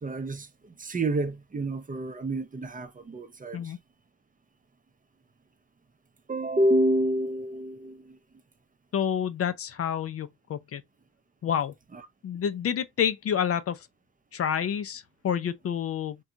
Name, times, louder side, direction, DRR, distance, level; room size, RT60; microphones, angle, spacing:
voice 1, 0.0-3.7 6.3-8.2 11.9-12.0, right 1 dB, 30° right, 0.6 m, -28 dB
voice 2, 8.9-10.8 11.4-11.7 12.2-13.9 14.3-16.2, left 8 dB, 50° left, 0.5 m, -29 dB
2.7 x 2.3 x 2.5 m
cardioid pair, 60°, 30 cm